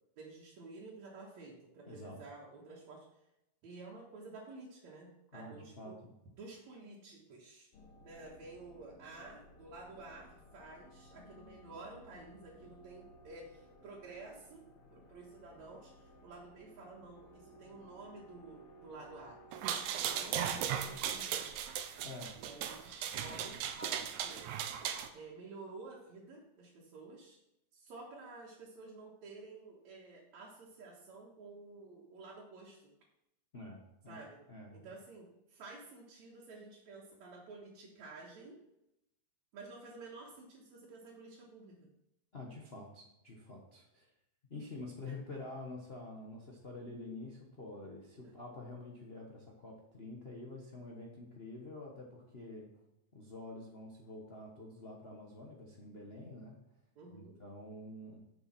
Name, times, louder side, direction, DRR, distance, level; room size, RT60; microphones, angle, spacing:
voice 1, 0.2-3.3 3.6-6.0 6.4-7.7 8.0-14.6 14.9-19.4 19.9-21.6 22.4-24.5 25.1-27.4 27.7-32.9 34.1-34.4 34.7-38.6 39.5-41.9 45.0-45.1 48.2-48.3 57.0-57.4, right 3 dB, 70° right, -5 dB, 2.8 m, -51 dB
voice 2, 1.9-2.2 5.3-6.1 22.0-22.3 33.5-34.2 34.5-34.8 42.3-44.1 44.5-52.7 53.1-56.5 57.1-58.2, left 2 dB, 75° left, -1 dB, 0.5 m, -48 dB
sound 1, 7.7-21.3, equal, 60° left, 1.8 m, -59 dB
sound 2, 19.5-25.1, right 9 dB, 85° right, 2.2 m, -37 dB
7.2 x 7.1 x 6.1 m, 0.86 s
omnidirectional pair, 3.3 m